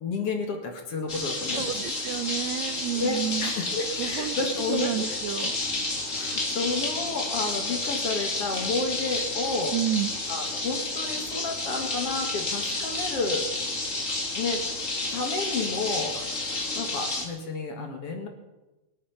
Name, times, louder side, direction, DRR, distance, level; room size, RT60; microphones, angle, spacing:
voice 1, 0.0-1.7 2.9-5.2 6.1-9.7 10.3-13.5 14.3-14.6 15.1-18.3, left 3 dB, 55° left, 3 dB, 2.6 m, -31 dB
sound 1, 1.1-17.3, left 2 dB, 30° left, 2.0 m, -30 dB
voice 2, 1.5-3.5 4.0-4.4 4.7-5.6 9.7-10.1, right 11 dB, 75° right, 9 dB, 1.7 m, -30 dB
24.5 x 8.7 x 5.7 m, 1.0 s
omnidirectional pair, 3.5 m